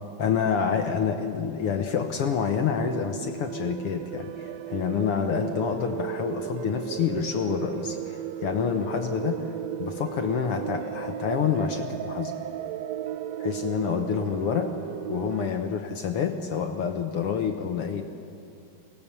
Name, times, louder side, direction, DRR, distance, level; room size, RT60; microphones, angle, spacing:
voice 1, 0.2-9.4 9.8-12.3 13.4-14.7 15.1-18.0, left 7 dB, 65° left, 6 dB, 1.5 m, -28 dB
sound 1, 2.4-15.5, right 10 dB, 85° right, 1.4 m, -35 dB
25.0 x 18.5 x 6.9 m, 2.7 s
omnidirectional pair, 3.6 m